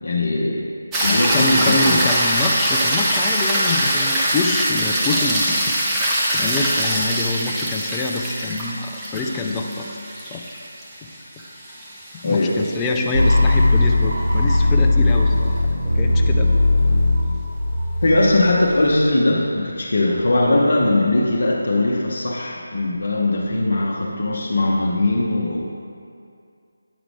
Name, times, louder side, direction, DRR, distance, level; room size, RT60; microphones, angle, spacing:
voice 1, 0.0-0.7 1.0-2.2 12.2-12.7 18.0-25.7, left 2 dB, 60° left, -3 dB, 0.7 m, -20 dB
sound 1, 0.9-13.3 17.8-17.9, right 1 dB, 10° right, 0.8 m, -22 dB
voice 2, 1.0-5.8 6.3-10.4 11.0-11.1 12.2-15.5 15.9-16.5, left 2 dB, 15° left, 1 dB, 0.4 m, -25 dB
sound 2, 13.1-19.1, left 2 dB, 65° right, 0.8 m, -18 dB
9.3 x 4.9 x 3.2 m, 2.4 s
figure-of-eight pair, 160°, 0 cm